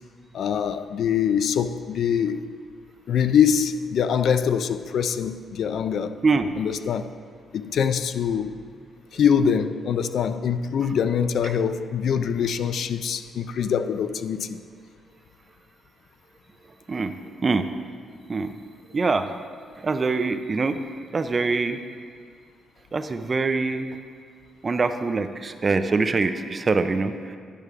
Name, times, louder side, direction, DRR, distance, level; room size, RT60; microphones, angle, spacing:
voice 1, 0.3-2.5 3.1-6.2 6.6-7.2 7.5-8.5 9.1-14.6, left 7 dB, 60° left, 0.3 m, -24 dB
voice 2, 18.9-19.3 19.8-21.8 22.9-24.0 24.6-27.4, right 3 dB, 25° right, 0.4 m, -24 dB
10.5 x 4.7 x 5.6 m
cardioid pair, 160°, 0 cm